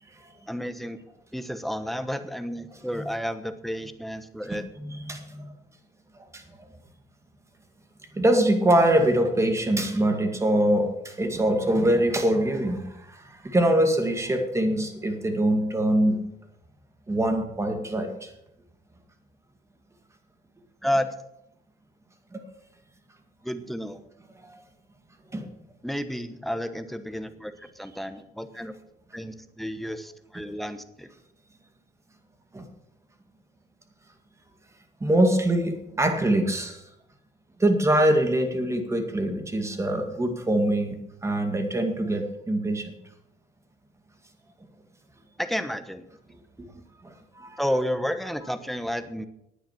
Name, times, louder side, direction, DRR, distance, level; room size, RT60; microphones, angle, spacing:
voice 1, 0.5-1.0 1.3-4.6 20.8-21.1 23.4-24.0 25.8-28.7 29.1-31.1 45.4-46.1 47.6-49.3, equal, ahead, 10 dB, 1.0 m, -31 dB
voice 2, 4.5-5.5 8.1-12.8 13.4-16.2 17.1-18.1 22.3-22.4 24.4-24.5 25.3-25.4 32.5-32.6 35.0-36.8 37.6-41.0 41.2-42.9 47.4-47.5, right 1 dB, 15° right, 5 dB, 2.1 m, -23 dB
10.5 x 9.0 x 7.2 m, 0.83 s
cardioid pair, 110°, 17 cm